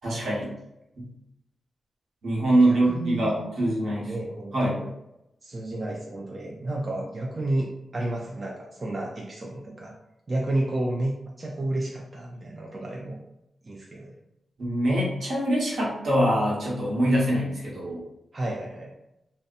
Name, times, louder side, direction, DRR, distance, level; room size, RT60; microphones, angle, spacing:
voice 1, 0.0-0.5 1.0-1.1 2.2-4.1 4.5-4.8 14.6-18.0, right 1 dB, 75° right, -6 dB, 1.1 m, -24 dB
voice 2, 2.6-3.3 4.0-4.8 5.4-10.0 10.3-13.2 13.6-14.2 18.3-18.9, right 1 dB, 35° right, -2 dB, 0.4 m, -31 dB
2.7 x 2.1 x 2.4 m, 0.87 s
cardioid pair, 95°, 0 cm